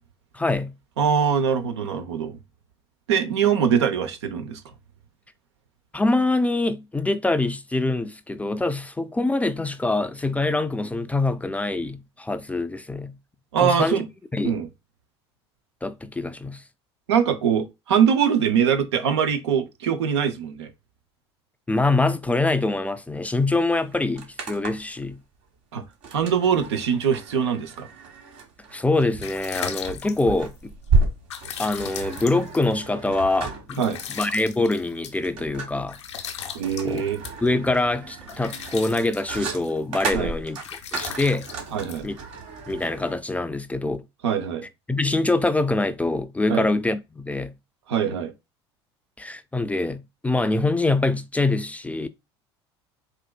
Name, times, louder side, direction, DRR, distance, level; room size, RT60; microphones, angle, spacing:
voice 1, 0.3-0.7 5.9-13.1 13.6-14.0 14.3-14.6 15.8-16.6 21.7-25.2 28.7-30.7 31.6-33.9 34.2-36.0 36.8-37.0 37.4-41.5 42.0-42.2 42.7-44.0 44.9-47.5 49.2-52.1, left 2 dB, 10° left, 0.3 m, -24 dB
voice 2, 1.0-2.4 3.1-4.6 13.5-14.1 14.4-14.7 17.1-20.7 25.7-25.8 26.1-27.9 33.8-34.0 36.5-37.2 40.1-40.3 41.7-42.1 44.2-44.7 46.5-46.7 47.9-48.3, right 7 dB, 80° right, 0.6 m, -22 dB
sound 1, 23.3-23.4 23.7-25.0 26.0-43.2, right 3 dB, 60° right, 1.3 m, -32 dB
sound 2, 28.8-42.7, left 8 dB, 85° left, 0.6 m, -39 dB
4.3 x 2.5 x 2.2 m
hypercardioid pair, 70°, 14 cm